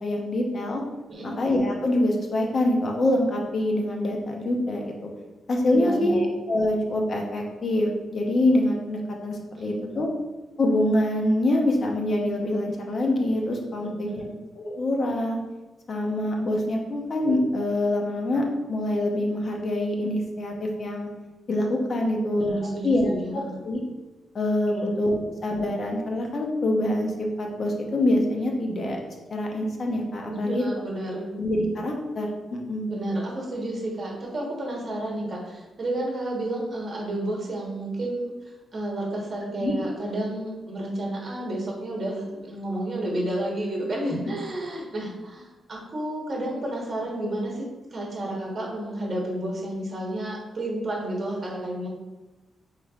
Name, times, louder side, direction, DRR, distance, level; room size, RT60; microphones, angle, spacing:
voice 1, 0.0-0.8 1.4-4.9 5.5-10.1 10.6-14.2 14.6-15.4 15.9-21.1 21.5-22.5 22.8-23.1 23.6-23.8 24.3-29.0 29.3-30.6 31.3-32.9 39.6-39.7, left 1 dB, 35° left, 1 dB, 0.7 m, -25 dB
voice 2, 5.7-6.2 9.5-10.0 13.8-14.3 22.0-23.6 24.7-24.9 30.3-31.3 32.9-38.3 38.7-51.9, right 1 dB, 30° right, -2 dB, 1.1 m, -31 dB
5.2 x 3.1 x 2.4 m, 1.1 s
wide cardioid pair, 150°, 0 cm